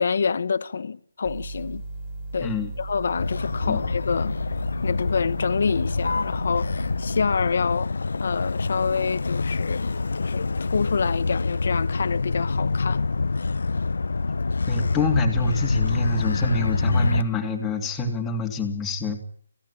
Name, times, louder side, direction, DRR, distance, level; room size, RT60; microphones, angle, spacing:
voice 1, 0.0-1.8 2.3-4.4 4.8-7.9 8.2-13.1, left 5 dB, 55° left, 1.3 m, -27 dB
sound 1, 1.2-7.2, right 2 dB, 20° right, 3.6 m, -36 dB
Motor vehicle (road), 3.2-17.2, left 3 dB, 70° left, 0.9 m, -26 dB
voice 2, 14.7-19.2, left 2 dB, 5° left, 3.0 m, -26 dB
28.0 x 16.5 x 8.7 m
hypercardioid pair, 165°, 0 cm